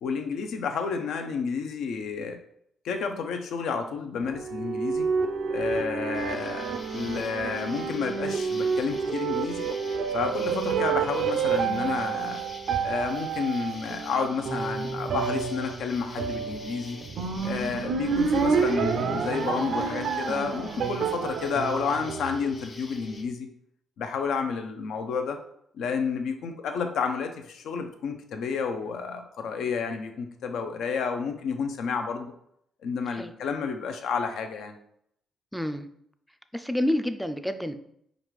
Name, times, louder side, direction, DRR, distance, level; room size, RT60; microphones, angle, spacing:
voice 1, 0.0-2.4 2.8-5.1 5.5-9.7 10.1-12.4 12.8-17.0 17.4-23.5 24.0-25.4 25.8-32.3 32.8-34.7, left 5 dB, 75° left, 6 dB, 0.5 m, -30 dB
sound 1, 4.2-22.8, right 5 dB, 70° right, 0.4 m, -29 dB
Insect, 6.1-23.2, left 2 dB, 35° left, 0.8 m, -47 dB
voice 2, 35.5-35.9 36.5-37.7, left 1 dB, ahead, 9 dB, 0.3 m, -28 dB
5.1 x 2.4 x 3.1 m, 0.72 s
cardioid pair, 90°, 0 cm